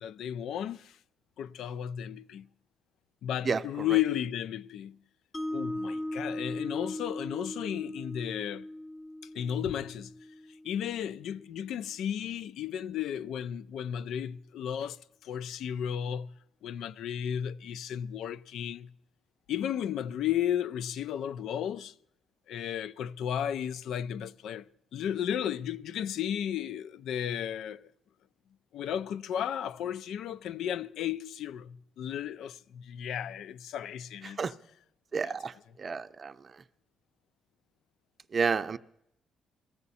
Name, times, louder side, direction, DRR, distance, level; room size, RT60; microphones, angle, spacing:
voice 1, 0.0-1.0 1.4-2.5 3.2-5.0 5.5-8.7 9.3-10.1 10.6-16.3 16.6-18.9 19.5-21.9 22.5-24.7 24.9-27.9 28.7-34.4 35.2-35.3, left 10 dB, 80° left, 0.4 m, -34 dB
voice 2, 3.4-3.9 34.2-34.5 35.1-36.3 38.3-38.8, right 5 dB, 40° right, 0.5 m, -31 dB
Mallet percussion, 5.3-11.5, left 1 dB, 20° left, 1.0 m, -39 dB
18.5 x 14.5 x 4.2 m
cardioid pair, 90°, 0 cm